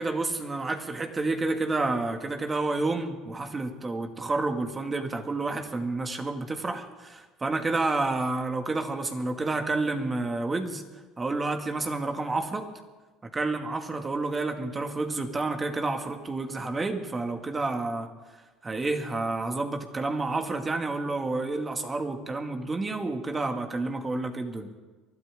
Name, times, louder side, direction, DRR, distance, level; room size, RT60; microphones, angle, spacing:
voice 1, 0.0-10.8 11.2-12.7 13.3-18.1 18.6-24.7, right 3 dB, 25° right, 5 dB, 2.2 m, -29 dB
23.5 x 13.0 x 3.8 m, 1.3 s
hypercardioid pair, 75°, 0 cm